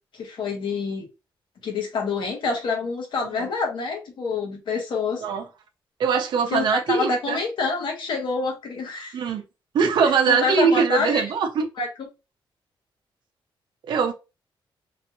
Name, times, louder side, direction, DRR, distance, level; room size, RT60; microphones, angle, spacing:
voice 1, 0.1-1.1 1.6-5.2 6.5-9.2 10.0-11.2 11.8-11.9, left 4 dB, 65° left, 1.3 m, -27 dB
voice 2, 6.0-7.4 9.1-9.4 9.7-11.7 13.8-14.1, right 6 dB, 60° right, 0.6 m, -21 dB
3.1 x 2.6 x 2.9 m
wide cardioid pair, 170°, 9 cm